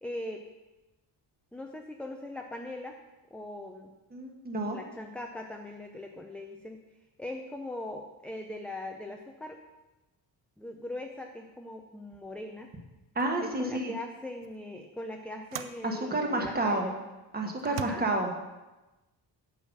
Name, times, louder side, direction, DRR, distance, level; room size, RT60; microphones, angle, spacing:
voice 1, 0.0-0.4 1.5-3.0 3.3-3.9 4.7-6.8 7.2-9.6 10.6-12.7 13.4-17.0 17.7-18.0, left 1 dB, 5° left, 2 dB, 0.5 m, -40 dB
voice 2, 4.1-4.8 13.1-13.9 15.8-16.9 17.3-18.3, right 2 dB, 20° right, 2 dB, 1.3 m, -30 dB
sound 1, 12.6-12.7 13.2-13.4 14.4-14.6 15.5-15.9 16.7-16.8 17.6-17.9, right 11 dB, 90° right, 0.7 m, -40 dB
10.5 x 5.6 x 7.2 m, 1.1 s
wide cardioid pair, 175°, 43 cm